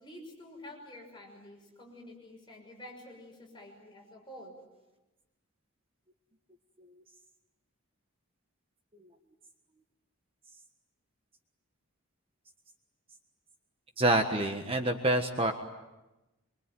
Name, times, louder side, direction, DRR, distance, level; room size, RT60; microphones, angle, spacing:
voice 1, 0.0-4.6, left 1 dB, 20° left, 0 dB, 6.2 m, -49 dB
voice 2, 14.0-15.5, right 1 dB, 25° right, 5 dB, 1.5 m, -27 dB
25.5 x 25.0 x 9.3 m, 1.0 s
head